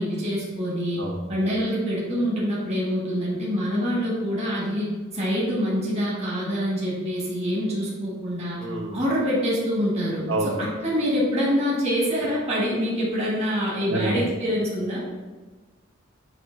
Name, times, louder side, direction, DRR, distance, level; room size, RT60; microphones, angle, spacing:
voice 1, 0.0-1.0 1.3-8.7 8.9-15.0, equal, 35° right, -6 dB, 1.7 m, -25 dB
voice 2, 8.6-9.0 10.3-10.6 13.9-14.2, right 2 dB, 75° right, 0 dB, 1.1 m, -27 dB
8.4 x 2.9 x 4.0 m, 1.3 s
head